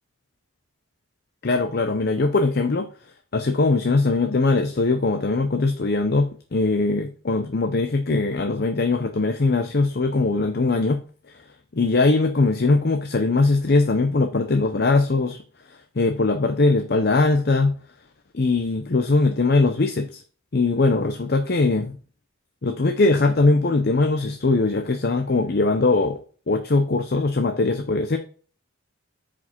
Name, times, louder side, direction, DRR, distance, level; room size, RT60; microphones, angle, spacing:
voice 1, 1.4-2.9 3.3-11.0 11.7-15.4 15.7-17.7 18.3-20.2 20.5-22.0 22.6-26.2 26.5-28.2, left 3 dB, 45° left, 7 dB, 0.6 m, -21 dB
7.9 x 5.0 x 4.4 m, 0.41 s
head